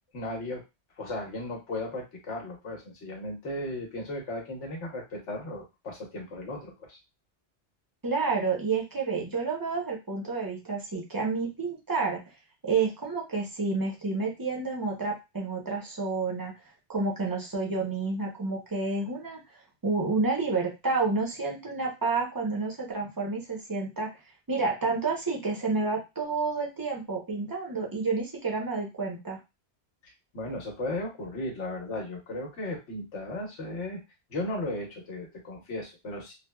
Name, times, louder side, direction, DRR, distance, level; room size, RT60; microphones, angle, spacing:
voice 1, 0.1-0.6 1.0-7.0 30.0-34.0 34.3-36.3, left 1 dB, 85° left, 0 dB, 1.3 m, -36 dB
voice 2, 8.0-12.2 12.6-16.5 16.9-19.4 19.8-24.1 24.5-29.4, right 4 dB, 25° right, -1 dB, 0.6 m, -29 dB
3.3 x 2.0 x 2.2 m, 0.24 s
omnidirectional pair, 1.2 m